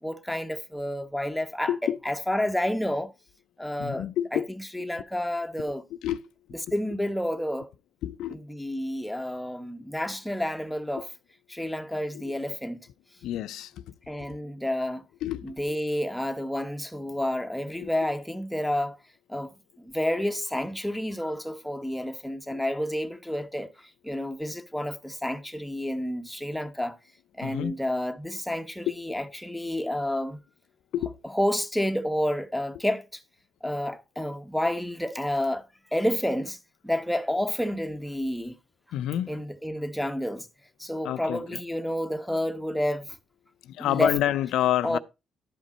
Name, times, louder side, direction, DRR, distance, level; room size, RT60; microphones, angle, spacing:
voice 1, 0.0-1.7 2.0-3.1 3.6-5.8 6.7-7.7 8.3-11.1 11.5-12.8 14.1-15.0 15.4-19.0 19.3-23.7 24.0-27.0 27.4-30.4 31.2-33.2 33.6-36.6 36.8-38.5 39.3-40.5 40.8-43.2 43.8-44.2 44.8-45.0, left 1 dB, 5° left, 1.0 m, -30 dB
voice 2, 3.8-4.5 6.0-6.2 8.0-8.4 12.1-12.2 13.2-13.8 15.2-15.8 17.8-17.9 22.5-22.6 27.4-27.7 28.9-29.0 30.9-31.1 38.9-39.4 41.0-41.6 43.6-45.0, left 12 dB, 80° left, 0.4 m, -28 dB
12.0 x 5.2 x 4.1 m
cardioid pair, 90°, 0 cm